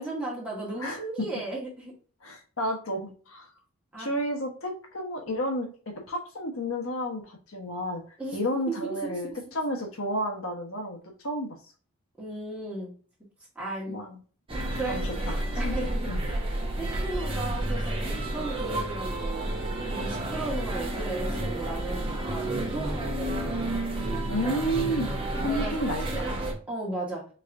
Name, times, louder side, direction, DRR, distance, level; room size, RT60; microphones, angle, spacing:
voice 1, 0.0-1.9 3.9-4.1 8.2-8.4 8.7-9.3 12.2-12.9 13.6-14.0 14.8-15.1 15.6-16.4 16.8-19.5 19.9-23.9 25.4-26.4 26.7-27.2, right 2 dB, 5° right, -5 dB, 1.8 m, -35 dB
voice 2, 2.2-3.5 4.0-5.7 6.1-11.0 11.2-11.6 13.9-14.2 14.9-16.2 24.3-26.3, equal, 75° left, 3 dB, 1.2 m, -31 dB
sound 1, 14.5-26.5, right 1 dB, 25° right, 1.0 m, -30 dB
4.7 x 3.5 x 2.6 m, 0.40 s
head